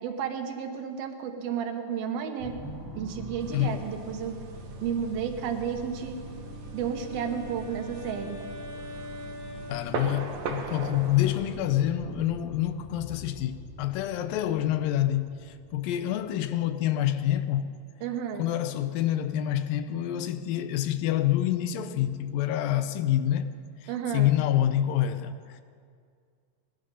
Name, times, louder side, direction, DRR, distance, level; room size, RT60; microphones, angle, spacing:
voice 1, 0.0-2.6 3.0-4.4 4.8-6.2 6.7-8.4 18.0-18.5 23.9-24.3, right 7 dB, 90° right, 3.0 m, -32 dB
sound 1, 2.4-16.9, equal, 45° left, 4.4 m, -44 dB
sound 2, 3.4-11.6, right 4 dB, 60° right, 2.1 m, -41 dB
Wind instrument woodwind instrument, 6.2-10.8, equal, 40° right, 1.3 m, -44 dB
voice 2, 9.7-17.7 18.4-23.5 23.8-25.6, left 12 dB, 80° left, 2.3 m, -27 dB
19.5 x 12.0 x 5.4 m
omnidirectional pair, 4.1 m